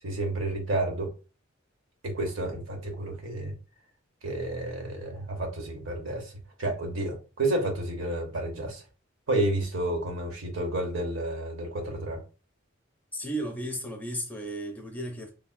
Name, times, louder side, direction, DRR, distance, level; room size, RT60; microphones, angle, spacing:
voice 1, 0.0-1.1 2.0-3.6 4.2-6.3 6.6-8.8 9.3-12.2, right 1 dB, 80° right, 0.9 m, -30 dB
voice 2, 13.1-15.3, right 1 dB, 10° left, 0.5 m, -34 dB
3.2 x 2.1 x 2.5 m
head